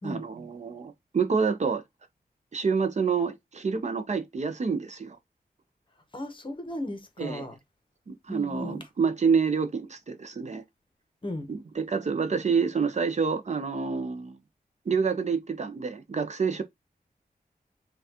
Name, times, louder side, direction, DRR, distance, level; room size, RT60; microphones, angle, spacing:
voice 1, 0.0-1.8 2.5-5.2 7.2-7.5 8.1-10.6 11.5-14.4 14.9-16.6, right 5 dB, 45° right, 0.6 m, -28 dB
voice 2, 6.1-7.5 8.3-8.8 11.2-11.5, left 1 dB, 30° left, 0.9 m, -36 dB
5.6 x 2.3 x 2.7 m
wide cardioid pair, 125°, 16 cm